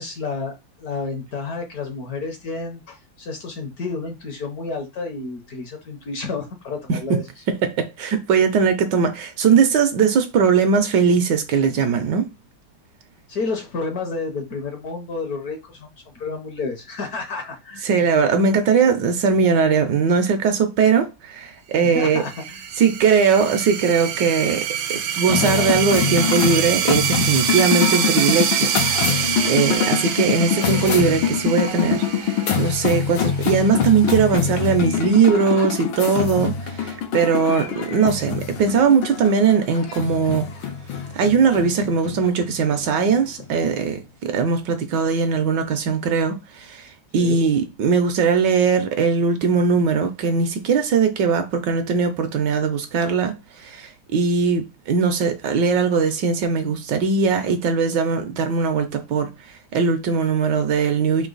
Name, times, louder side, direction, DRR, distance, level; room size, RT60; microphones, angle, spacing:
voice 1, 0.0-7.2 13.3-15.9 16.1-17.8 21.8-22.7 47.2-47.4, left 4 dB, 60° left, 1.2 m, -30 dB
voice 2, 7.5-12.3 17.8-22.2 22.8-28.7 29.0-29.2 29.5-40.5 41.1-46.9 47.1-59.3 59.7-61.3, right 5 dB, 70° right, 1.2 m, -20 dB
sound 1, 22.1-33.4, right 9 dB, 90° right, 1.4 m, -25 dB
sound 2, 25.3-43.9, left 7 dB, 90° left, 1.6 m, -25 dB
4.0 x 2.8 x 3.8 m
omnidirectional pair, 2.1 m